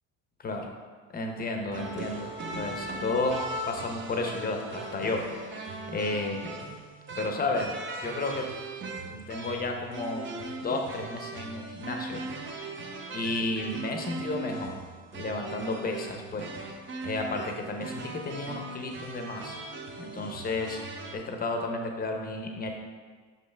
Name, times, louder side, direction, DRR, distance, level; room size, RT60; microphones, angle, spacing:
voice 1, 0.4-0.7 1.1-6.5 7.2-8.5 9.0-10.2 10.6-12.2 13.1-14.8 15.1-16.5 17.0-19.6 20.0-20.8 21.1-22.7, left 2 dB, 25° left, 3 dB, 0.9 m, -32 dB
sound 1, 1.7-21.1, right 2 dB, 35° right, 0.8 m, -39 dB
5.8 x 5.6 x 3.5 m, 1.5 s
supercardioid pair, 110°, 34 cm